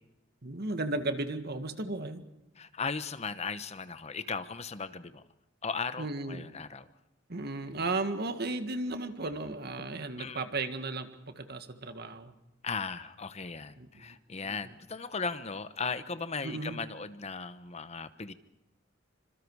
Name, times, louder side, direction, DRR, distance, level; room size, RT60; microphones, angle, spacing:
voice 1, 0.4-2.2 6.0-6.5 7.3-11.1 11.4-12.3 13.8-14.2 14.5-14.6 16.4-16.8, right 2 dB, 55° right, 8 dB, 1.9 m, -35 dB
voice 2, 2.6-5.2 5.6-6.9 10.2-10.5 12.6-18.3, left 5 dB, 35° left, 12 dB, 0.9 m, -37 dB
27.5 x 26.0 x 4.8 m, 0.91 s
head